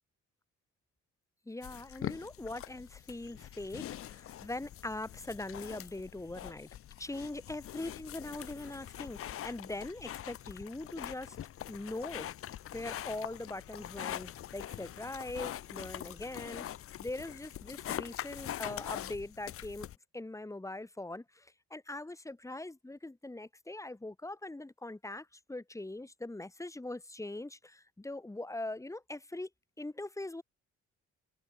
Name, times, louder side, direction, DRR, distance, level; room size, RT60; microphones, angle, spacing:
voice 1, 1.5-6.7 7.0-11.4 11.7-12.3 12.7-16.7 17.0-19.9 20.1-29.5 29.8-30.4, left 2 dB, 10° left, 1.3 m, -42 dB
sound 1, 1.6-20.0, left 12 dB, 50° left, 0.5 m, -43 dB
cardioid pair, 90°, 30 cm